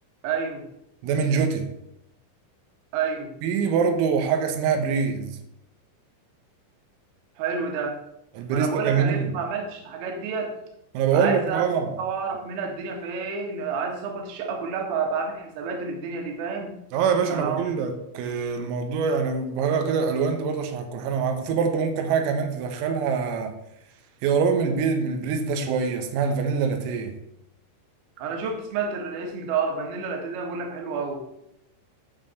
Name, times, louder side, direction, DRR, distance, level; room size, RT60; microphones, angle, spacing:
voice 1, 0.2-0.7 2.9-3.3 7.4-8.0 8.5-10.6 11.1-11.6 12.0-16.7 17.3-17.6 28.2-31.2, right 5 dB, 60° right, 3.0 m, -29 dB
voice 2, 1.0-1.7 3.4-5.4 8.4-9.4 11.0-11.9 16.9-23.6 24.2-27.2, right 6 dB, 85° right, 3.8 m, -24 dB
11.0 x 4.6 x 7.5 m
omnidirectional pair, 5.9 m